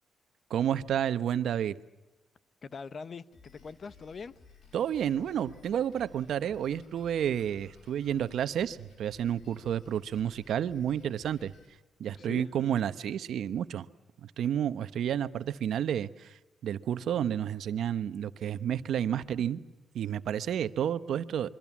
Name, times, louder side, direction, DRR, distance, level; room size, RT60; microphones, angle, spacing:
voice 1, 0.5-1.8 4.7-11.5 12.0-13.9 14.2-19.6 19.9-21.5, right 9 dB, 75° right, 1.1 m, -30 dB
voice 2, 2.6-4.4 12.1-12.5, left 5 dB, 50° left, 1.0 m, -42 dB
Drum kit, 3.3-11.7, left 5 dB, 65° left, 6.5 m, -57 dB
26.5 x 24.0 x 7.3 m
cardioid pair, 100°, 0 cm